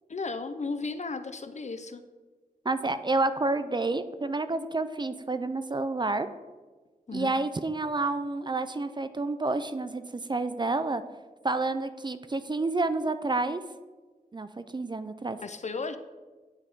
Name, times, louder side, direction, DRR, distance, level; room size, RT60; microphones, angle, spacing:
voice 1, 0.1-2.0 7.1-7.3 15.4-16.0, left 4 dB, 50° left, 10 dB, 0.5 m, -34 dB
voice 2, 2.7-6.3 7.1-11.0 11.4-13.6 14.3-15.4, right 3 dB, 30° right, 11 dB, 0.3 m, -29 dB
9.7 x 3.5 x 3.9 m, 1.3 s
wide cardioid pair, 65°, 16 cm